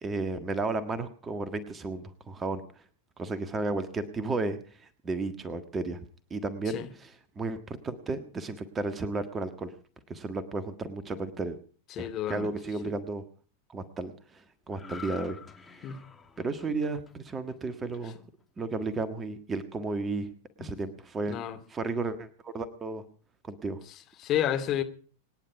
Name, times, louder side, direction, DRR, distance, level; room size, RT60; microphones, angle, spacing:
voice 1, 0.0-2.6 3.2-6.0 6.3-9.7 10.1-11.6 12.0-13.2 13.7-15.9 16.4-18.2 18.6-20.3 20.6-21.4 21.7-23.0 23.4-23.8, right 3 dB, 20° right, 1.6 m, -33 dB
voice 2, 11.9-12.5 15.8-16.0 20.6-20.7 21.3-21.6 23.9-24.8, left 11 dB, 35° left, 2.3 m, -31 dB
sound 1, 14.7-18.2 18.6-18.8, left 5 dB, 15° left, 2.0 m, -47 dB
26.5 x 10.0 x 4.7 m
figure-of-eight pair, 90°, 0 cm